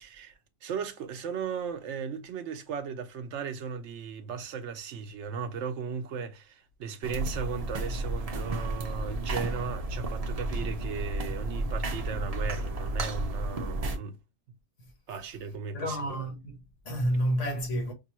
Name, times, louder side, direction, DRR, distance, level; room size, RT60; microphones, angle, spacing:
voice 1, 0.0-14.2 15.1-16.2, right 6 dB, 70° right, 0.8 m, -36 dB
sound 1, 7.0-14.0, right 2 dB, 40° right, 0.5 m, -32 dB
voice 2, 15.7-17.9, equal, 70° left, 1.5 m, -30 dB
5.3 x 2.2 x 2.9 m
omnidirectional pair, 1.3 m